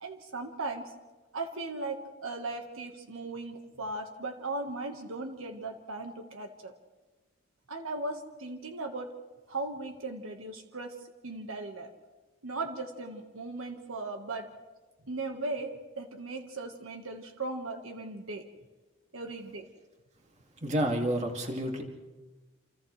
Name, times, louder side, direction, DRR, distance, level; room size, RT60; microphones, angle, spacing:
voice 1, 0.0-0.9 1.3-6.7 7.7-9.1 9.5-11.0 11.2-11.9 12.4-14.5 15.1-18.4 19.1-19.6, right 2 dB, 75° right, 4 dB, 1.5 m, -37 dB
voice 2, 20.6-21.8, right 1 dB, 35° right, 1 dB, 2.4 m, -29 dB
29.0 x 27.5 x 3.3 m, 1.2 s
head